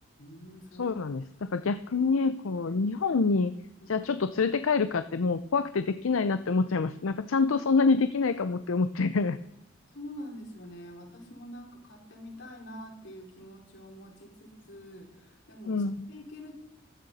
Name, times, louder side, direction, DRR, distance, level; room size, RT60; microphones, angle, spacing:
voice 1, 0.2-1.0 3.8-4.1 9.9-16.5, equal, 65° left, -2 dB, 5.0 m, -46 dB
voice 2, 0.8-3.5 3.9-9.4 15.7-16.1, left 4 dB, 85° left, 12 dB, 0.6 m, -26 dB
15.5 x 13.0 x 4.2 m, 0.82 s
head